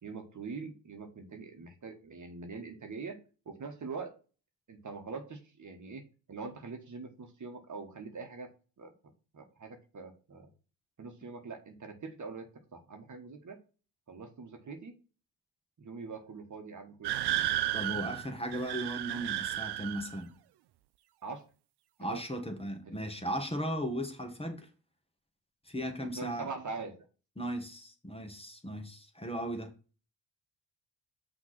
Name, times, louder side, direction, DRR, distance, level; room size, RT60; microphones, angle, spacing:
voice 1, 0.0-3.2 3.4-4.1 4.7-8.5 8.8-8.9 9.3-10.5 11.0-12.5 12.7-13.6 14.1-14.9 15.8-17.5 17.8-18.0 21.2-21.4 22.0-22.2 22.8-22.9 26.1-27.1, right 4 dB, 45° right, 5 dB, 1.5 m, -43 dB
sound 1, 17.0-20.2, right 13 dB, 65° right, 0.6 m, -33 dB
voice 2, 17.7-20.3 22.0-24.7 25.7-26.5 27.4-29.7, equal, 15° left, 4 dB, 1.9 m, -36 dB
5.9 x 3.5 x 5.9 m, 0.34 s
supercardioid pair, 55°, 43 cm